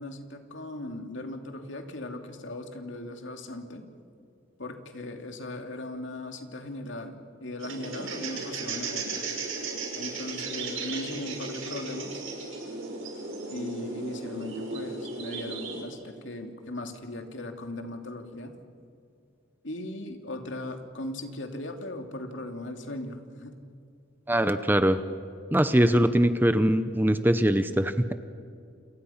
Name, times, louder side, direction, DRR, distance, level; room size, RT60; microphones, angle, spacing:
voice 1, 0.0-3.9 4.6-9.3 9.9-12.2 13.5-18.5 19.6-23.6 24.6-24.7, left 1 dB, 65° left, 4 dB, 2.7 m, -38 dB
sound 1, 7.6-15.8, right 3 dB, 85° right, 6.1 m, -35 dB
voice 2, 24.3-25.0 25.5-28.1, right 1 dB, 10° right, 10 dB, 0.7 m, -22 dB
28.5 x 28.5 x 5.8 m, 2.4 s
head